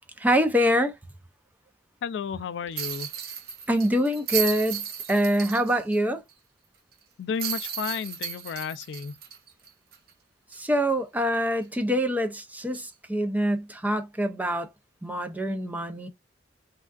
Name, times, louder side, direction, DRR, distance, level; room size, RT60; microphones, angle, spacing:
voice 1, 0.2-0.9 3.7-4.8 5.1-6.2 10.5-14.7 15.0-16.1, equal, 10° right, 0.5 m, -25 dB
voice 2, 2.0-3.1 7.2-9.1, left 6 dB, 75° left, 0.3 m, -32 dB
sound 1, 2.8-6.0 6.3-6.4 7.4-10.1 10.5-10.6 12.7-12.9, right 8 dB, 60° right, 0.6 m, -34 dB
3.5 x 2.3 x 2.3 m
head